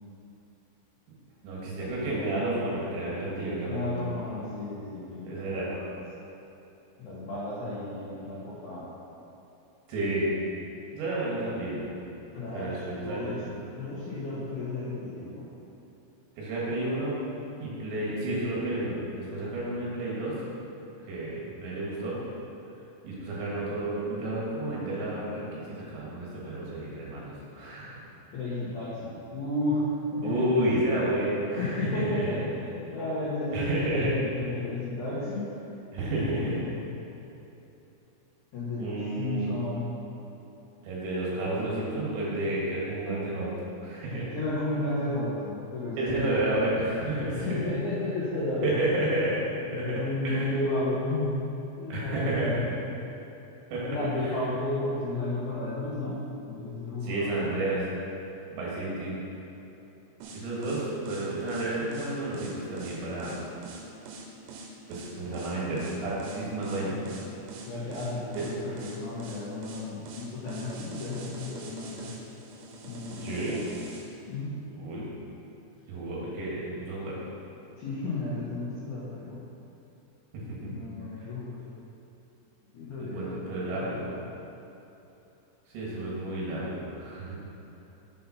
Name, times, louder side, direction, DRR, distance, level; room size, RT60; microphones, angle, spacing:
voice 1, 1.4-3.9 5.2-5.7 9.9-10.3 10.9-11.9 12.5-13.5 16.4-17.2 17.6-20.4 21.1-22.2 23.0-28.0 30.2-32.0 33.5-34.1 35.9-36.6 38.8-39.5 40.8-43.5 43.8-44.3 46.0-47.6 48.6-49.5 49.7-50.0 50.2-50.5 51.9-52.5 53.7-53.9 54.2-54.4 57.0-57.8 58.5-59.2 60.3-63.4 64.9-67.0 68.3-68.5 73.2-73.6 74.8-75.1 75.9-77.2 80.3-80.7 81.2-81.3 83.0-84.1 85.7-87.4, right 1 dB, 70° right, -6 dB, 3.7 m, -31 dB
voice 2, 3.7-5.9 7.0-8.9 12.3-15.4 28.3-29.8 30.1-30.4 31.5-35.4 36.1-36.7 38.5-39.9 44.3-46.8 47.3-48.7 49.7-52.8 53.9-56.2 56.5-57.5 67.6-72.1 72.8-73.4 74.3-74.5 77.8-79.4 80.7-81.6 82.7-84.2, left 2 dB, 90° left, -9 dB, 1.7 m, -33 dB
sound 1, 60.2-74.1, right 2 dB, 90° right, 3.5 m, -43 dB
7.5 x 5.6 x 5.8 m, 2.9 s
omnidirectional pair, 5.8 m